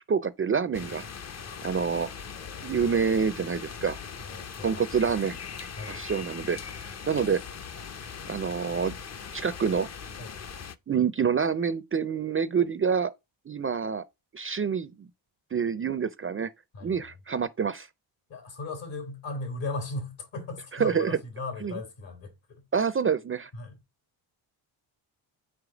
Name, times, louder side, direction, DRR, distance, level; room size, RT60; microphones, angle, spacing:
voice 1, 0.1-1.0 1.6-2.1 2.6-4.0 4.6-5.4 5.9-6.6 6.8-7.4 8.3-8.9 9.3-9.9 10.9-13.1 13.5-14.0 14.3-15.1 15.5-16.5 16.8-17.9 20.8-21.2 21.6-21.7 22.7-23.5, right 6 dB, 30° right, 0.4 m, -27 dB
sound 1, 0.7-10.8, left 6 dB, 35° left, 0.6 m, -40 dB
voice 2, 2.3-2.7 4.2-5.0 5.7-6.0 6.9-7.2 10.2-10.4 16.7-17.1 18.3-22.6 23.5-23.8, left 3 dB, 70° left, 3.0 m, -38 dB
5.0 x 4.5 x 4.9 m
cardioid pair, 100°, 47 cm